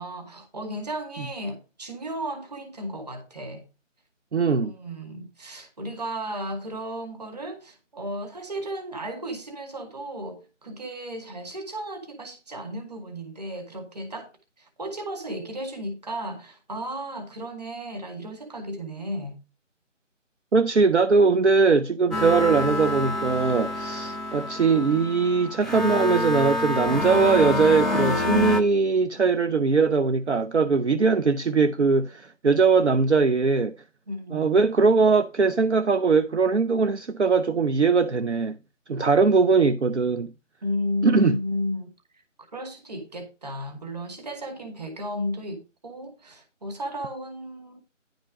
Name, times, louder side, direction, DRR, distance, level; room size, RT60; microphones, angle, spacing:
voice 1, 0.0-3.6 4.6-14.3 14.6-19.3 34.1-34.6 40.6-41.9 42.5-47.8, equal, 30° right, 2.2 m, -34 dB
voice 2, 4.3-4.7 20.5-33.8 34.3-38.6 38.9-40.3 41.0-41.4, right 4 dB, 60° right, 0.8 m, -21 dB
sound 1, 22.1-28.6, left 2 dB, ahead, 0.5 m, -27 dB
10.5 x 5.2 x 4.8 m
figure-of-eight pair, 175°, 38 cm